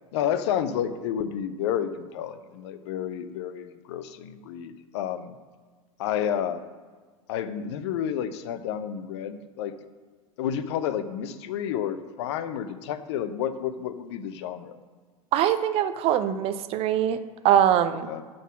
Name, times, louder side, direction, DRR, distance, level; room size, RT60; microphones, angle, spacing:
voice 1, 0.1-5.3 6.0-6.6 7.3-9.7 10.4-14.8 18.1-18.2, left 9 dB, 50° left, 11 dB, 0.6 m, -30 dB
voice 2, 15.3-17.2 17.4-18.1, right 10 dB, 30° right, 12 dB, 0.5 m, -22 dB
9.1 x 3.9 x 5.9 m, 1.5 s
figure-of-eight pair, 85°, 18 cm